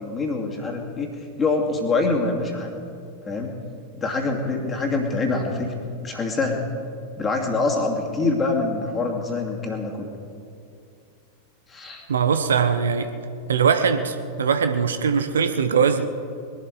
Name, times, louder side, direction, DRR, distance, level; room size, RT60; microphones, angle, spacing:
voice 1, 0.0-2.7 3.3-3.6 3.9-5.7 6.0-6.6 7.2-10.1 11.7-12.0, left 3 dB, 20° left, 0 dB, 2.5 m, -25 dB
voice 2, 12.1-13.1 13.5-16.1, right 6 dB, 65° right, 9 dB, 0.8 m, -21 dB
21.5 x 12.0 x 4.8 m, 2.4 s
figure-of-eight pair, 90°, 0 cm